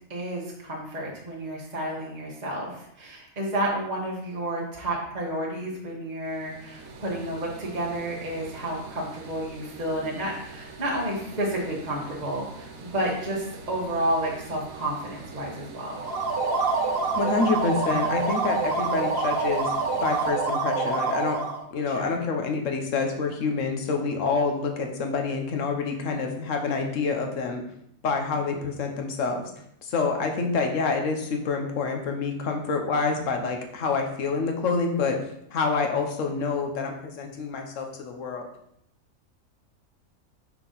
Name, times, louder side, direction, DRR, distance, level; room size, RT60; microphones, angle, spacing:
voice 1, 0.1-16.0 21.9-22.1 28.5-28.6, right 1 dB, 30° right, -3 dB, 1.3 m, -31 dB
sound 1, 6.2-20.3, right 4 dB, 75° right, 1.3 m, -44 dB
sound 2, 15.9-21.6, right 4 dB, 45° right, 1.0 m, -26 dB
voice 2, 17.2-19.7 20.0-21.4 21.7-27.6 28.0-29.4 29.8-35.2 35.5-38.5, left 4 dB, 60° left, 4 dB, 1.3 m, -27 dB
5.9 x 4.6 x 4.0 m, 0.74 s
omnidirectional pair, 1.6 m